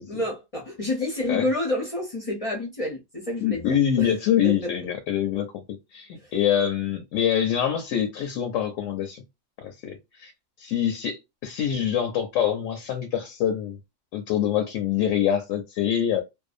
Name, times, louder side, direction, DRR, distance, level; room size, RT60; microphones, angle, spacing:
voice 1, 0.1-4.1 4.4-4.7 6.2-6.3, left 1 dB, 40° left, 0.5 m, -29 dB
voice 2, 3.4-9.2 9.6-10.3 10.6-13.8 14.1-16.2, left 9 dB, 70° left, 0.9 m, -25 dB
2.6 x 2.2 x 2.4 m
omnidirectional pair, 1.5 m